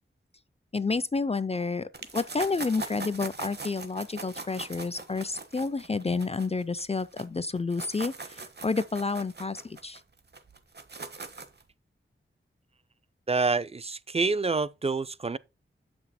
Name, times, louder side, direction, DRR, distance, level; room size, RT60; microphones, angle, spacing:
voice 1, 0.7-10.0, left 4 dB, 30° left, 0.5 m, -30 dB
sound 1, 1.9-7.2 7.6-11.6, right 3 dB, 55° right, 1.3 m, -41 dB
voice 2, 13.3-15.4, right 4 dB, 30° right, 0.5 m, -27 dB
7.3 x 6.1 x 4.3 m
wide cardioid pair, 70°, 21 cm